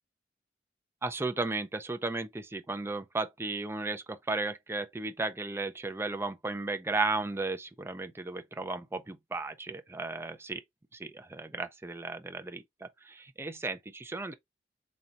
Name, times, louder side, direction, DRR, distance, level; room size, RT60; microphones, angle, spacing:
voice 1, 1.0-10.6 10.9-14.3, right 3 dB, 15° right, 0.5 m, -35 dB
4.1 x 4.1 x 2.4 m
head